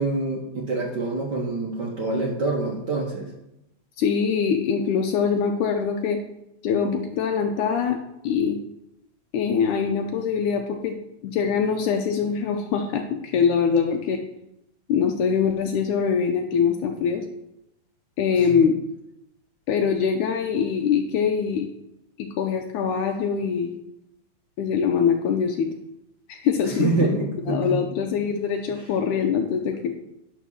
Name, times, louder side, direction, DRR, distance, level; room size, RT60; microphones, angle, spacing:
voice 1, 0.0-3.3 18.3-18.6 26.6-27.8, right 3 dB, 50° right, -1 dB, 1.3 m, -26 dB
voice 2, 4.0-6.2 6.6-8.0 8.2-8.6 9.3-11.0 11.2-14.2 14.9-17.2 18.2-18.8 19.7-21.7 22.2-23.7 24.6-25.7 26.3-30.0, left 6 dB, 80° left, 3 dB, 2.1 m, -23 dB
11.0 x 4.6 x 6.3 m, 0.86 s
omnidirectional pair, 3.5 m